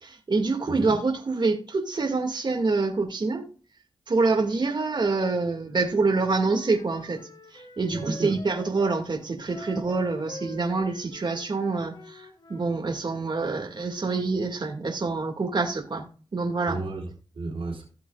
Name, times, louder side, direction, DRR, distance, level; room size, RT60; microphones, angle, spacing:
voice 1, 0.0-3.5 4.1-7.2 7.5-16.1 16.3-16.8, right 3 dB, 55° right, 1 dB, 2.2 m, -26 dB
voice 2, 0.6-1.0 7.9-8.4 16.7-17.9, right 3 dB, 70° right, -1 dB, 3.4 m, -33 dB
Wind instrument woodwind instrument, 5.9-9.0 9.5-12.7, left 2 dB, 55° left, 2.1 m, -46 dB
16.5 x 6.1 x 2.4 m, 0.38 s
cardioid pair, 55°, 9 cm